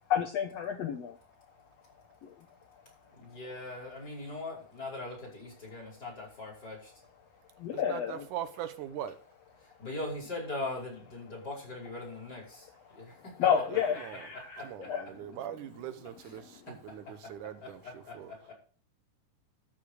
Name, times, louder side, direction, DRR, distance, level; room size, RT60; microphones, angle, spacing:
voice 1, 0.1-1.2 2.2-2.3 7.6-8.2 12.6-13.1 13.4-15.1, left 8 dB, 65° left, 5 dB, 1.9 m, -31 dB
voice 2, 3.1-6.9 9.8-12.7 12.9-13.3 14.6-14.7 16.7-16.8 18.1-18.5, left 2 dB, 30° left, -2 dB, 5.8 m, -40 dB
voice 3, 7.7-9.2 13.5-14.3 14.6-18.3, right 10 dB, 80° right, 11 dB, 2.5 m, -41 dB
13.5 x 5.7 x 6.5 m, 0.40 s
omnidirectional pair, 3.5 m